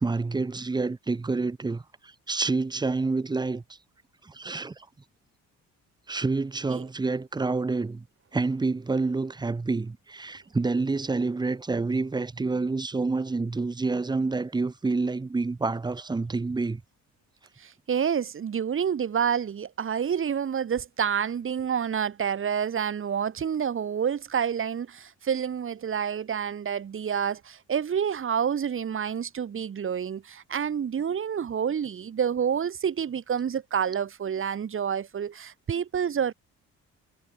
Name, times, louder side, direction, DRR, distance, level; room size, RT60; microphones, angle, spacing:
voice 1, 0.0-3.6 4.2-4.9 6.1-8.0 8.3-16.8, right 3 dB, 15° right, 0.6 m, -28 dB
voice 2, 17.6-36.3, right 8 dB, 45° right, 1.6 m, -28 dB
cardioid pair, 90°, 30 cm